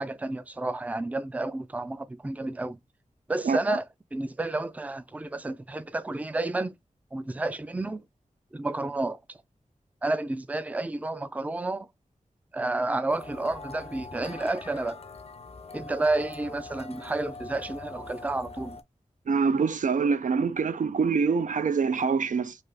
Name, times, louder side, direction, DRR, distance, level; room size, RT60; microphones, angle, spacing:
voice 1, 0.0-2.8 3.3-6.7 7.1-8.0 8.5-9.4 10.0-11.9 12.5-15.0 15.7-18.8, right 2 dB, 10° right, 0.4 m, -30 dB
voice 2, 3.4-3.8 19.3-22.5, right 5 dB, 80° right, 0.4 m, -25 dB
sound 1, 13.1-18.8, left 3 dB, 50° left, 0.4 m, -43 dB
3.3 x 2.4 x 2.3 m
wide cardioid pair, 65°, 13 cm